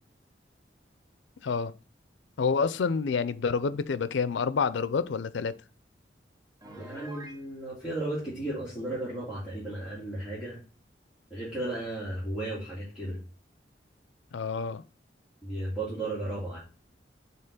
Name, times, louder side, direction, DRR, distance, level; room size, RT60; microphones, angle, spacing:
voice 1, 1.4-1.7 2.4-5.6 14.3-14.8, left 5 dB, 90° left, 0.4 m, -28 dB
Piano, 6.6-7.4, right 1 dB, 20° right, 0.8 m, -46 dB
voice 2, 6.7-10.6 11.3-13.2 15.4-16.6, right 1 dB, 5° right, 2.3 m, -34 dB
5.6 x 3.8 x 5.3 m
head